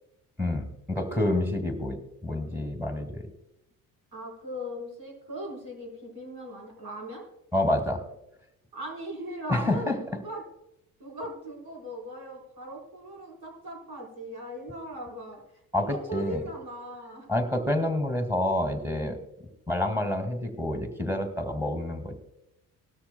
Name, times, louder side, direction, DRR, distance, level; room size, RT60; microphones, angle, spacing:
voice 1, 0.4-3.2 7.5-8.0 9.5-10.0 15.7-16.4 17.3-19.2 19.7-22.2, left 1 dB, 5° right, 8 dB, 2.2 m, -28 dB
voice 2, 4.1-7.2 8.7-10.4 11.0-15.4 15.8-17.3, right 1 dB, 55° right, -1 dB, 4.8 m, -39 dB
18.0 x 13.0 x 2.3 m, 0.84 s
hypercardioid pair, 50°, 45 cm